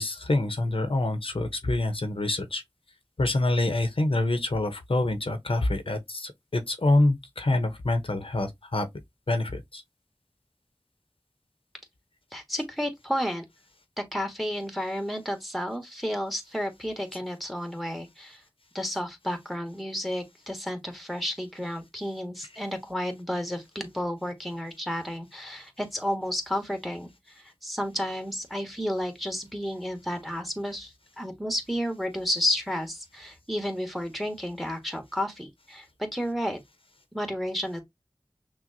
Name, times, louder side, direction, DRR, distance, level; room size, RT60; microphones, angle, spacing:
voice 1, 0.0-2.6 3.2-8.9 9.3-9.8, left 2 dB, 80° left, 0.8 m, -26 dB
voice 2, 12.3-13.4 14.0-18.4 18.7-36.6 37.1-37.8, equal, ahead, 1.2 m, -32 dB
6.0 x 2.2 x 2.6 m
wide cardioid pair, 45°, 9 cm